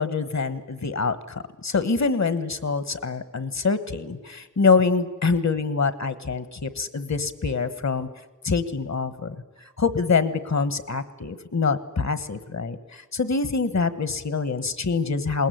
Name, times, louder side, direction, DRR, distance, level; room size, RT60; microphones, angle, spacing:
voice 1, 0.0-8.1 8.4-9.3 9.8-15.5, left 4 dB, 65° left, 14 dB, 1.4 m, -25 dB
21.0 x 19.5 x 9.3 m, 1.1 s
wide cardioid pair, 60°, 30 cm